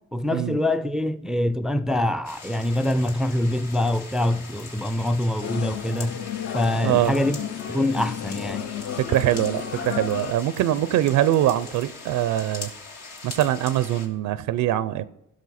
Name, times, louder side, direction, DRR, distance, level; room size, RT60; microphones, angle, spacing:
voice 1, 0.1-6.2 6.5-7.4 7.7-8.7, left 1 dB, ahead, 0.4 m, -24 dB
sound 1, 2.2-14.1, left 4 dB, 70° left, 1.9 m, -41 dB
sound 2, 5.4-10.3, left 8 dB, 55° left, 0.6 m, -33 dB
voice 2, 6.8-7.1 9.0-12.7 13.2-15.1, right 12 dB, 80° right, 0.5 m, -23 dB
15.5 x 6.3 x 4.2 m
cardioid pair, 90°, 30 cm